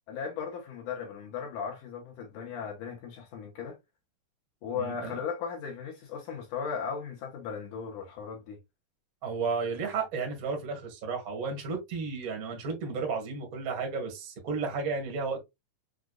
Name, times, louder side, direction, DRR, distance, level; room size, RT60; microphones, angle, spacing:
voice 1, 0.1-3.8 4.6-8.6, left 6 dB, 70° left, 2.2 m, -37 dB
voice 2, 4.7-5.2 9.2-15.4, right 4 dB, 85° right, 0.7 m, -33 dB
6.3 x 2.5 x 2.3 m
omnidirectional pair, 4.0 m